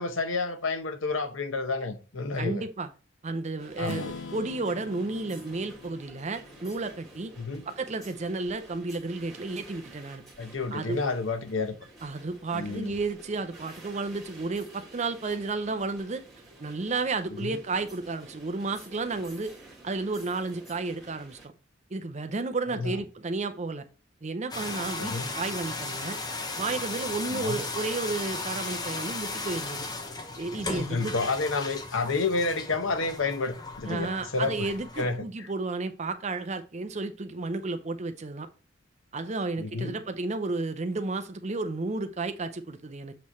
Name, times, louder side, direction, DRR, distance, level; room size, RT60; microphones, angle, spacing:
voice 1, 0.0-2.6 3.8-4.1 7.4-7.7 10.4-11.7 12.5-12.9 17.4-17.6 22.7-23.0 25.0-25.3 27.2-27.6 30.6-34.7 35.0-35.5 39.6-40.0, left 3 dB, 85° left, 0.8 m, -30 dB
voice 2, 2.4-2.9 3.2-7.3 7.7-10.2 10.7-11.0 12.0-16.2 16.6-19.5 19.8-21.5 21.9-23.9 24.2-26.2 26.6-29.9 30.3-31.1 33.9-38.5 39.1-43.1, right 3 dB, 35° right, 0.6 m, -32 dB
sound 1, 3.6-21.5, right 2 dB, ahead, 2.0 m, -51 dB
Strum, 3.8-7.8, left 4 dB, 65° left, 0.5 m, -44 dB
sound 2, 24.5-35.2, left 3 dB, 20° left, 0.7 m, -36 dB
7.7 x 3.1 x 4.2 m
head